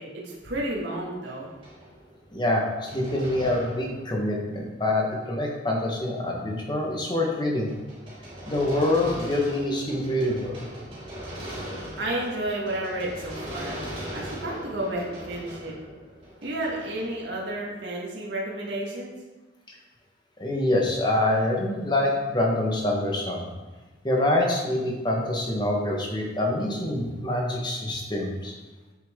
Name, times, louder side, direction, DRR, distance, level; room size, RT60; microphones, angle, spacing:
voice 1, 0.0-1.5 12.0-13.8 14.1-15.7 16.4-19.1, right 1 dB, 65° right, -3 dB, 1.6 m, -31 dB
sound 1, 0.9-4.7 5.0-5.1 5.9-6.0 6.3-6.6 7.3-17.7, equal, 25° right, 2.8 m, -40 dB
voice 2, 2.3-7.7 8.5-10.5 19.7-19.8 20.4-23.5 24.0-28.6, left 1 dB, 20° left, -1 dB, 1.2 m, -25 dB
8.1 x 7.2 x 3.7 m, 1.2 s
head